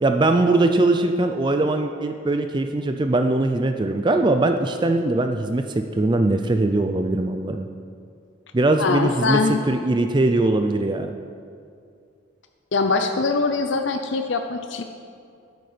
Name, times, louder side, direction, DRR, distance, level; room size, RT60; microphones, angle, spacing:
voice 1, 0.0-7.7 8.5-9.4 9.7-11.1, right 2 dB, 25° right, 6 dB, 0.4 m, -21 dB
voice 2, 8.8-9.6 12.7-14.8, left 4 dB, 65° left, 6 dB, 0.6 m, -22 dB
12.0 x 9.3 x 5.0 m, 2.4 s
head